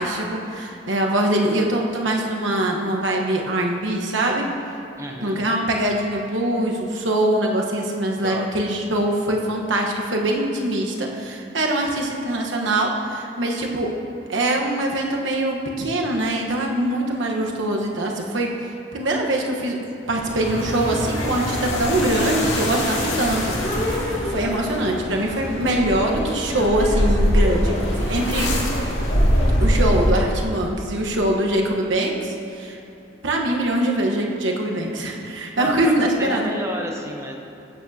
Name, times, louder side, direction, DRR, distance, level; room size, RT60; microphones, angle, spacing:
voice 1, 0.0-4.5 5.2-13.9 14.3-18.5 18.9-28.5 29.6-32.8 33.2-36.5, right 1 dB, 80° right, 0 dB, 1.1 m, -23 dB
voice 2, 5.0-5.4 8.2-8.5 35.6-37.4, equal, 15° right, 2 dB, 0.7 m, -31 dB
sound 1, 20.1-30.5, equal, 75° left, 2.2 m, -23 dB
15.0 x 8.9 x 2.7 m, 2.6 s
head